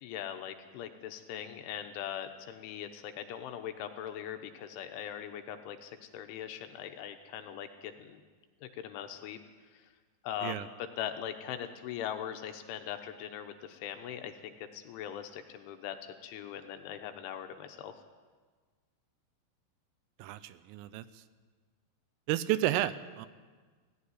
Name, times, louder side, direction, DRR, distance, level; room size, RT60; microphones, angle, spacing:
voice 1, 0.0-8.2 8.6-9.4 9.7-9.9 10.2-10.7 11.0-17.9, left 10 dB, 75° left, 7 dB, 3.3 m, -41 dB
voice 2, 20.2-21.1 22.3-23.3, right 13 dB, 80° right, 14 dB, 3.3 m, -31 dB
18.0 x 15.0 x 9.8 m, 1.5 s
omnidirectional pair, 5.9 m